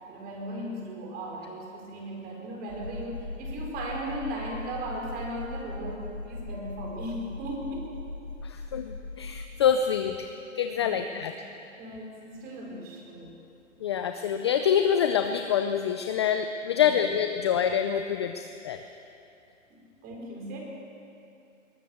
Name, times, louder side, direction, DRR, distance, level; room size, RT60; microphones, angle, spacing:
voice 1, 0.1-7.9 10.7-11.1 11.8-13.3 16.7-17.0 19.7-20.6, right 1 dB, 25° right, 0 dB, 4.8 m, -37 dB
sound 1, 2.7-9.5, left 3 dB, 65° left, 6.2 m, -39 dB
voice 2, 8.4-10.3 10.6-11.3 13.8-18.8, left 8 dB, 20° left, 7 dB, 0.5 m, -26 dB
21.5 x 19.5 x 7.1 m, 2.6 s
hypercardioid pair, 145°, 39 cm